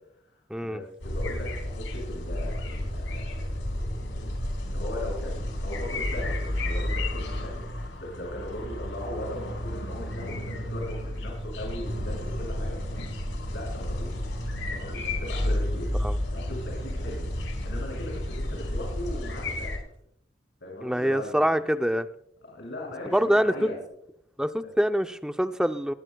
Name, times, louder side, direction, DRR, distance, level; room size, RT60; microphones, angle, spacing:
voice 1, 0.6-3.5 3.7-13.2 13.5-14.1 14.7-15.9 16.3-17.2 17.6-19.7 20.6-21.6 22.4-23.8, left 1 dB, 65° left, -4 dB, 6.5 m, -39 dB
sound 1, 1.0-19.8, left 1 dB, 80° left, 5.0 m, -31 dB
voice 2, 20.8-22.1 23.1-23.7 24.4-25.9, equal, 5° right, 9 dB, 0.5 m, -25 dB
20.0 x 18.5 x 2.3 m, 0.73 s
head